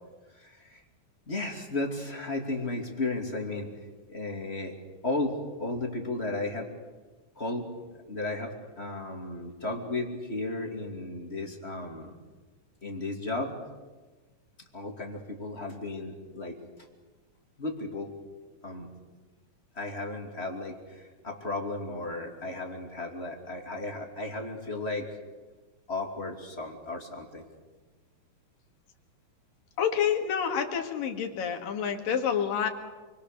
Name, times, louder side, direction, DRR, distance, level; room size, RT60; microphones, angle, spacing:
voice 1, 0.4-0.8 1.3-3.7 4.1-4.7 5.0-6.7 7.4-7.7 8.1-12.2 12.8-13.6 14.7-16.6 17.6-18.1 18.6-18.9 19.8-25.1 25.9-27.4, left 2 dB, 20° left, 2 dB, 2.5 m, -34 dB
voice 2, 29.8-32.7, left 8 dB, 80° left, 5 dB, 3.7 m, -28 dB
28.5 x 23.0 x 6.7 m, 1.3 s
omnidirectional pair, 3.9 m